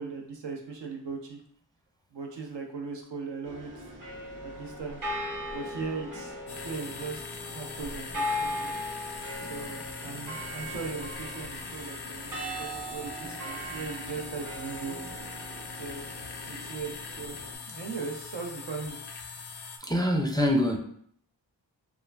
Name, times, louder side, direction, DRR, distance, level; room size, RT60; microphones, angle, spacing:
voice 1, 0.0-1.4 2.1-3.8 4.4-5.0 5.5-7.2 7.5-8.8 9.5-14.9 15.7-16.1 16.5-17.4 17.7-19.0, right 4 dB, 80° right, 1 dB, 0.6 m, -38 dB
sound 1, 3.4-17.5, left 1 dB, 50° right, 0.8 m, -39 dB
sound 2, 6.5-19.8, left 5 dB, 65° left, 0.5 m, -41 dB
voice 2, 19.8-20.8, equal, 10° left, 1 dB, 0.4 m, -24 dB
2.4 x 2.2 x 3.1 m, 0.64 s
cardioid pair, 45°, 42 cm